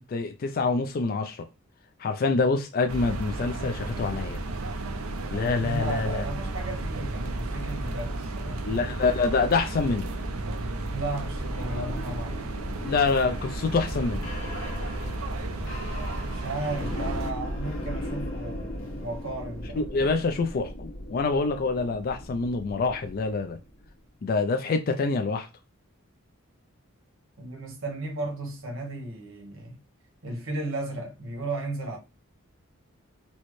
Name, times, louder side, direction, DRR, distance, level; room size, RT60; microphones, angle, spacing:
voice 1, 0.0-1.5 2.0-4.4 5.3-6.2 8.6-10.1 12.8-14.3 19.7-23.6 24.2-25.5, left 4 dB, 45° left, 0.3 m, -26 dB
sound 1, 2.9-17.3, right 2 dB, 90° right, 0.6 m, -34 dB
voice 2, 5.6-8.8 10.9-12.5 16.3-20.1 27.4-29.7 30.2-32.0, right 2 dB, 65° right, 1.1 m, -35 dB
sound 2, 11.1-23.9, equal, 70° left, 0.9 m, -36 dB
4.1 x 2.1 x 3.1 m
head